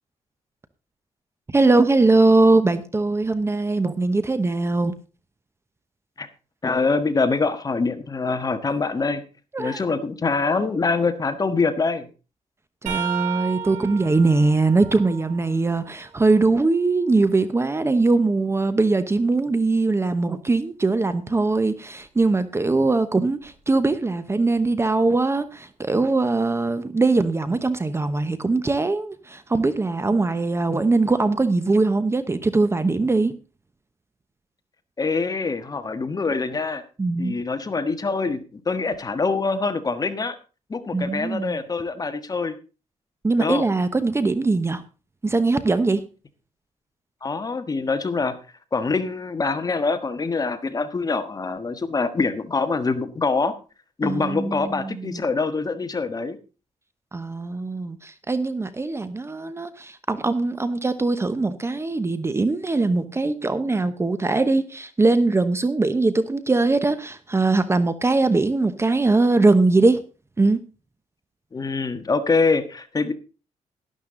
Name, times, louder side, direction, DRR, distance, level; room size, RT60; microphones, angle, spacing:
voice 1, 1.5-4.9 9.5-10.0 12.8-33.3 37.0-37.4 40.9-41.6 43.2-44.8 45.2-46.0 54.0-55.2 57.1-70.0 70.4-70.6, right 3 dB, 20° right, 0.9 m, -21 dB
voice 2, 6.6-9.2 9.6-12.1 35.0-36.8 37.2-40.4 40.7-42.5 43.4-43.7 47.2-48.4 48.7-53.5 54.0-56.4 71.5-73.1, left 4 dB, 30° left, 1.4 m, -24 dB
sound 1, 12.9-16.6 17.1-19.1 22.0-22.2 23.4-23.6 24.9-25.0, right 9 dB, 85° right, 4.9 m, -35 dB
12.0 x 11.5 x 3.8 m
cardioid pair, 115°, 13 cm